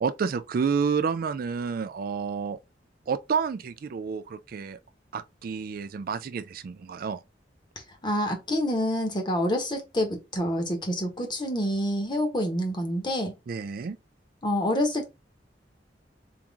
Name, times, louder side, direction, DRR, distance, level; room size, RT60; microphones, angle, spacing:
voice 1, 0.0-2.6 3.1-4.8 5.1-7.2 13.5-14.0, right 6 dB, 55° right, 0.3 m, -29 dB
voice 2, 8.0-13.3 14.4-15.1, equal, 25° left, 1.2 m, -27 dB
3.7 x 3.0 x 3.5 m
head